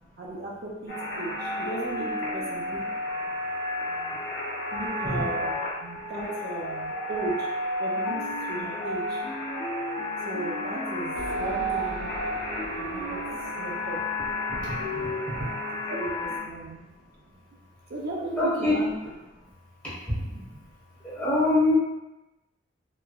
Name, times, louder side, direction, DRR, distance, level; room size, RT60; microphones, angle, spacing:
voice 1, 0.2-2.9 4.7-5.5 5.8-7.5 7.8-8.2 8.5-9.2 10.3-12.1 12.8-13.2 13.6-14.0 15.3-15.6 15.9-16.8 17.9-18.9, right 2 dB, 55° right, -3 dB, 0.5 m, -36 dB
sound 1, 0.9-16.4, left 1 dB, 55° left, 0.8 m, -31 dB
sound 2, 11.1-16.8, left 1 dB, 85° left, 0.7 m, -42 dB
voice 2, 14.6-15.1 18.3-18.8 21.0-21.8, left 2 dB, 10° left, -12 dB, 1.1 m, -25 dB
3.2 x 2.1 x 2.2 m, 0.98 s
head